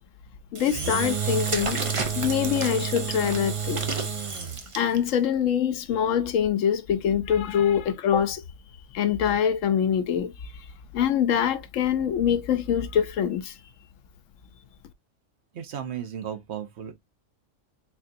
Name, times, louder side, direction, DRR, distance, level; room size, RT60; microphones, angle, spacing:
voice 1, 0.5-1.8 2.1-3.8 4.7-8.4 8.9-10.3 10.9-13.5, left 8 dB, 80° left, 1.0 m, -24 dB
Engine / Drill, 0.5-5.1, right 6 dB, 35° right, 0.5 m, -29 dB
voice 2, 15.5-16.9, right 9 dB, 60° right, 1.0 m, -35 dB
4.3 x 2.8 x 2.5 m
omnidirectional pair, 1.3 m